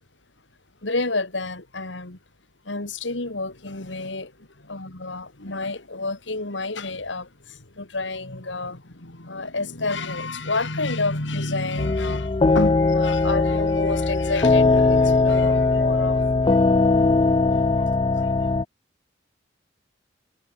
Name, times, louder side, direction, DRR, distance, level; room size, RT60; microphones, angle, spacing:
voice 1, 0.8-2.2 2.6-16.6 17.8-17.9 18.2-18.3, left 3 dB, 75° left, 2.8 m, -29 dB
sound 1, 11.8-18.6, left 3 dB, 25° left, 0.4 m, -20 dB
head